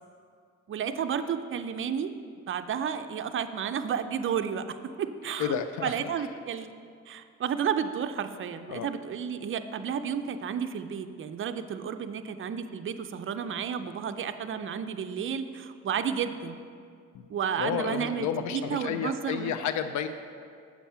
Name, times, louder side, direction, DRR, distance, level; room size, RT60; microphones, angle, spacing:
voice 1, 0.7-2.1 2.5-6.7 7.1-16.6 17.3-19.5, right 7 dB, 45° right, 9 dB, 0.5 m, -32 dB
voice 2, 5.4-6.1 8.7-8.9 17.1-17.2 17.6-20.1, left 8 dB, 75° left, 10 dB, 0.5 m, -31 dB
7.3 x 7.1 x 5.6 m, 2.2 s
cardioid pair, 90°, 30 cm